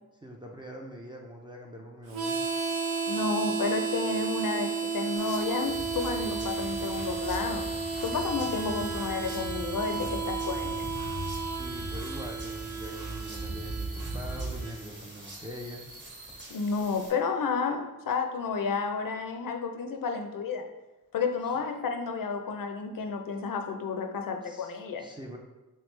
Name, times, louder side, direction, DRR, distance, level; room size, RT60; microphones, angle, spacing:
voice 1, 0.2-2.4 11.5-15.8 24.4-25.4, equal, 15° right, -1 dB, 0.4 m, -43 dB
Harmonica, 2.1-14.8, right 5 dB, 85° right, 0.6 m, -33 dB
voice 2, 3.1-7.7 8.0-10.9 16.5-20.7 21.1-25.1, left 5 dB, 65° left, 5 dB, 0.5 m, -31 dB
sound 1, 5.2-17.1, right 1 dB, 30° right, 1.1 m, -46 dB
sound 2, 5.6-14.6, right 1 dB, 65° right, 1.0 m, -39 dB
3.5 x 3.0 x 3.2 m, 1.0 s
wide cardioid pair, 90°, 36 cm